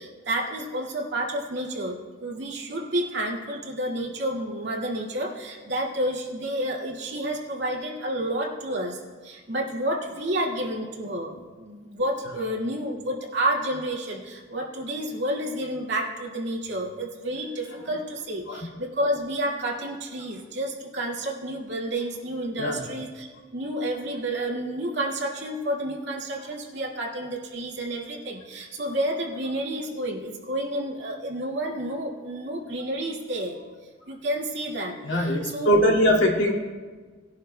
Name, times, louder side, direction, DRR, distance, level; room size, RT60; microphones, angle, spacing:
voice 1, 0.0-11.3 11.6-33.6 34.1-35.8, right 1 dB, 60° right, -2 dB, 2.2 m, -30 dB
voice 2, 35.0-36.5, equal, 70° left, -2 dB, 2.1 m, -21 dB
20.0 x 11.0 x 2.2 m, 1.4 s
head